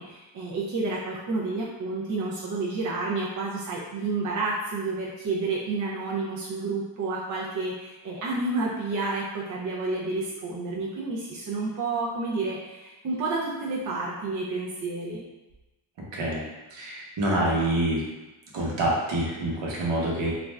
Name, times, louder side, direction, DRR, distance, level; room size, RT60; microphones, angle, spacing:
voice 1, 0.0-15.2, right 3 dB, 45° right, -5 dB, 0.4 m, -30 dB
voice 2, 16.1-16.4 16.7-18.0 18.5-20.3, right 1 dB, 60° right, -3 dB, 0.9 m, -26 dB
2.5 x 2.2 x 3.1 m, 1.0 s
wide cardioid pair, 145°, 48 cm